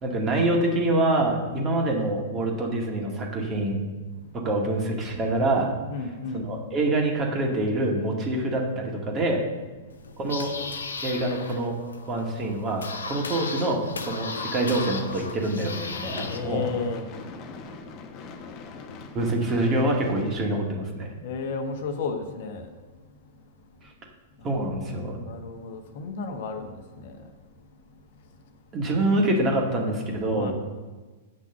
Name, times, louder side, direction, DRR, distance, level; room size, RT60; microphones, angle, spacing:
voice 1, 0.0-3.8 4.4-5.7 6.3-9.4 10.2-10.5 11.0-11.7 12.1-16.7 19.1-21.1 24.4-25.2 28.7-30.5, right 1 dB, 25° right, 0 dB, 2.1 m, -25 dB
voice 2, 5.9-6.5 16.2-17.1 18.5-18.8 19.6-20.3 21.2-23.1 24.4-24.5 24.9-27.3 28.1-28.5 30.4-30.5, left 4 dB, 55° left, 5 dB, 1.2 m, -34 dB
sound 1, 9.9-16.4, left 4 dB, 75° left, 0.9 m, -36 dB
Gunshot gunfire / Fireworks, 15.0-21.2, left 4 dB, 35° left, 1.1 m, -42 dB
8.1 x 6.0 x 7.2 m, 1.3 s
figure-of-eight pair, 105°, 0 cm